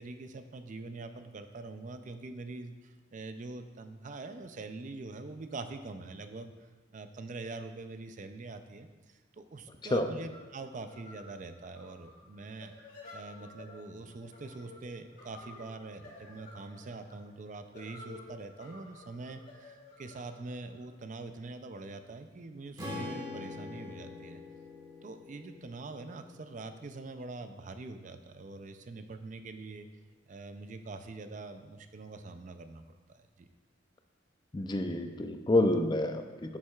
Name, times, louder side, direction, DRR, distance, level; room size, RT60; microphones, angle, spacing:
voice 1, 0.0-12.7 13.1-24.4 25.0-29.9 30.3-33.5, right 3 dB, 40° right, 8 dB, 0.4 m, -44 dB
sound 1, 9.8-21.5, left 2 dB, 50° left, 2.5 m, -53 dB
Strum, 22.8-27.0, left 2 dB, 20° right, 1.4 m, -44 dB
voice 2, 34.5-36.6, left 1 dB, 25° left, 7 dB, 0.4 m, -28 dB
11.0 x 7.3 x 2.4 m, 1.2 s
head